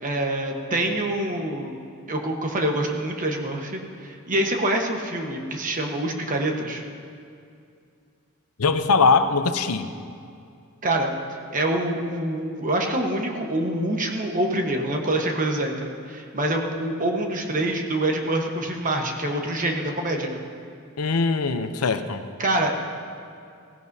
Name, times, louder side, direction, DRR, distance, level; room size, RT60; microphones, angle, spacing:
voice 1, 0.0-1.8 2.1-6.8 10.8-11.1 11.5-20.4 22.4-22.8, right 1 dB, 35° right, 2 dB, 1.2 m, -26 dB
voice 2, 8.6-9.9 21.0-22.2, left 4 dB, 90° left, 9 dB, 0.7 m, -21 dB
16.5 x 15.5 x 2.7 m, 2.4 s
head